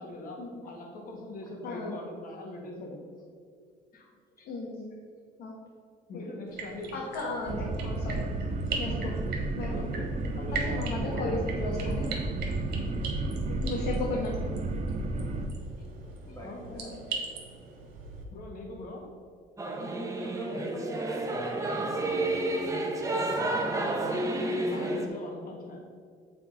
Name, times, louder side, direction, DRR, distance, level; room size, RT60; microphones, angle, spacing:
voice 1, 0.0-0.4 0.6-3.0 3.9-4.1 4.4-4.5 6.1-6.9 9.7-11.3 13.3-13.6 15.8-15.9 16.3-17.0 18.3-19.1 23.1-23.5 24.3-25.8, left 2 dB, 55° left, 1 dB, 1.8 m, -42 dB
voice 2, 1.6-2.0 4.4-4.9 5.4-5.5 6.1-6.3 6.9-8.3 8.8-9.1 9.5-9.8 10.5-12.1 13.6-14.3, left 2 dB, 75° left, -3 dB, 1.3 m, -35 dB
sound 1, 6.5-18.2, right 4 dB, 75° right, 1.7 m, -41 dB
sound 2, 7.5-15.5, right 2 dB, 45° right, 0.8 m, -32 dB
voice 3, 16.3-17.1 20.2-21.5, equal, 20° left, -2 dB, 1.9 m, -46 dB
Singing / Musical instrument, 19.6-25.1, right 2 dB, 20° right, 0.9 m, -30 dB
7.5 x 4.2 x 5.6 m, 2.1 s
cardioid pair, 110°, 17 cm